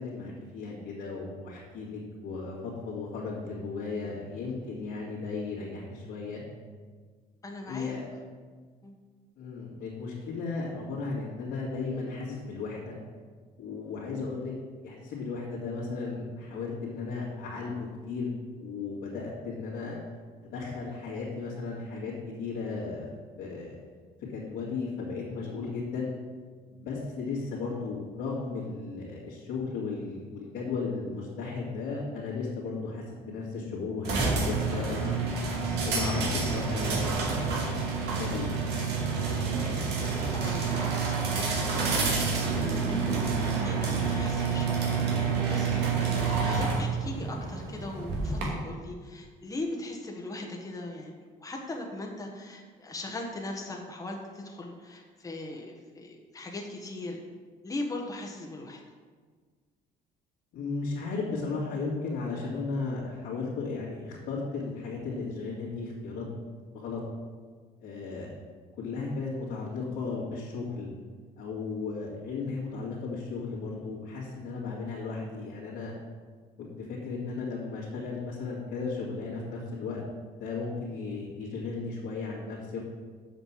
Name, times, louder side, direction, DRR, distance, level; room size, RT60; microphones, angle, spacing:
voice 1, 0.0-6.4 7.6-8.0 9.4-13.0 13.6-14.5 14.8-20.0 20.4-22.1 22.4-23.1 23.4-23.8 24.2-26.1 26.7-35.3 35.9-37.5 38.0-38.5 60.5-66.3 66.7-67.0 67.8-68.3 68.8-70.9 71.4-75.9 76.6-80.0 80.4-82.8, left 4 dB, 80° left, -8 dB, 2.4 m, -35 dB
voice 2, 7.4-7.9 8.8-8.9 39.2-39.5 40.0-41.8 42.5-51.1 51.4-57.2 57.6-58.8, left 2 dB, 20° left, 0 dB, 1.3 m, -39 dB
sound 1, 34.0-48.4, right 5 dB, 80° right, 2.2 m, -28 dB
7.4 x 5.4 x 7.4 m, 1.5 s
cardioid pair, 110°, 17 cm